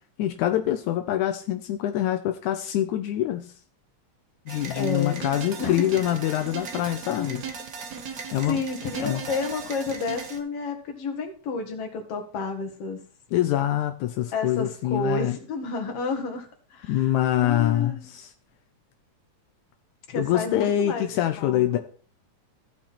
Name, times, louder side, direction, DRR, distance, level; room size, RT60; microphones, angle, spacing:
voice 1, 0.2-3.5 4.5-7.4 8.3-8.6 9.0-9.2 13.3-15.4 16.9-18.3 20.2-21.8, left 12 dB, 85° left, 6 dB, 2.1 m, -25 dB
sound 1, 4.5-10.4, right 5 dB, 85° right, 0.8 m, -37 dB
voice 2, 4.7-5.2 5.6-5.8 6.7-7.7 8.5-13.0 14.3-17.1 17.4-18.0 20.1-21.8, left 4 dB, 55° left, 4 dB, 2.5 m, -31 dB
14.5 x 6.0 x 4.2 m, 0.42 s
omnidirectional pair, 3.4 m